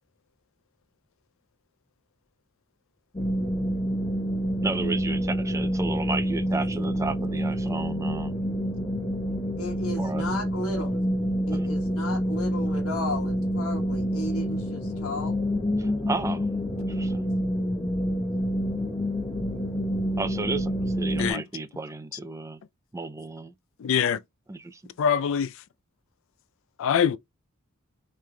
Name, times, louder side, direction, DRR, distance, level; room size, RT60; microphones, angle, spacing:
sound 1, 3.1-21.3, equal, 25° left, 0.9 m, -27 dB
voice 1, 4.6-8.3 10.0-10.2 11.5-11.7 15.8-16.5 16.8-17.3 20.2-22.6 22.9-23.5 24.5-24.8, right 3 dB, 15° right, 0.4 m, -33 dB
voice 2, 9.6-11.0 11.5-15.4, left 2 dB, 90° left, 1.2 m, -34 dB
voice 3, 23.8-24.2 25.0-25.5 26.8-27.2, left 7 dB, 65° left, 0.4 m, -23 dB
5.5 x 3.2 x 2.2 m
head